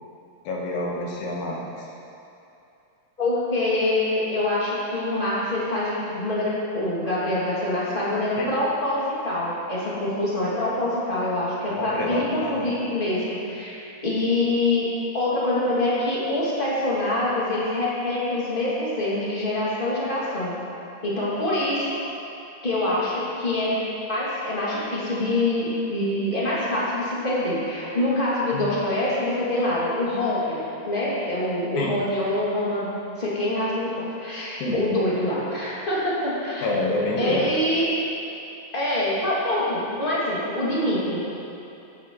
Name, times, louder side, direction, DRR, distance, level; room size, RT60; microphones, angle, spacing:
voice 1, 0.4-1.9 8.4-8.5 11.7-12.7 28.5-28.7 31.8-31.9 34.6-34.7 36.6-37.4, left 2 dB, 75° left, -2 dB, 2.7 m, -28 dB
voice 2, 3.2-20.5 21.0-22.0 22.6-23.8 24.1-36.7 37.2-37.9 38.7-41.2, left 1 dB, 20° left, -8 dB, 2.1 m, -25 dB
15.0 x 8.7 x 3.1 m, 2.8 s
omnidirectional pair, 3.5 m